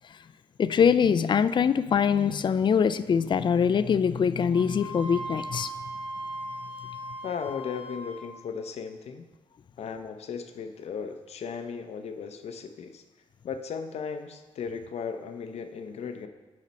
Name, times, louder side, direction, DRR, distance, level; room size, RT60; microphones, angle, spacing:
voice 1, 0.6-5.7, left 7 dB, 40° left, 14 dB, 0.4 m, -23 dB
Wind instrument woodwind instrument, 4.5-8.3, right 1 dB, 60° right, 2.1 m, -38 dB
voice 2, 7.2-9.3 9.8-13.0 13.4-16.3, left 6 dB, 60° left, 8 dB, 0.7 m, -36 dB
8.3 x 4.9 x 4.3 m, 1.2 s
supercardioid pair, 70°, 12 cm